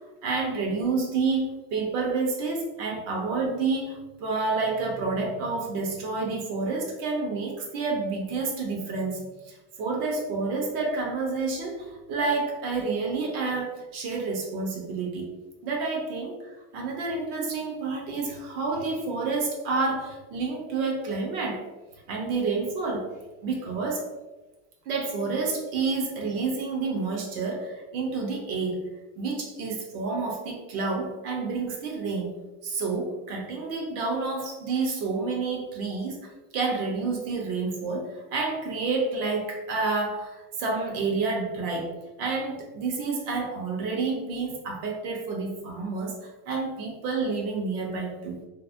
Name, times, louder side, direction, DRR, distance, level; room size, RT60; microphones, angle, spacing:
voice 1, 0.2-15.3 15.6-16.4 16.7-21.6 22.1-23.1 23.4-24.0 24.9-28.9 29.2-36.3 36.5-41.9 42.2-48.4, right 4 dB, 80° right, 1 dB, 1.0 m, -29 dB
3.2 x 2.1 x 2.5 m, 1.1 s
cardioid pair, 145°, 48 cm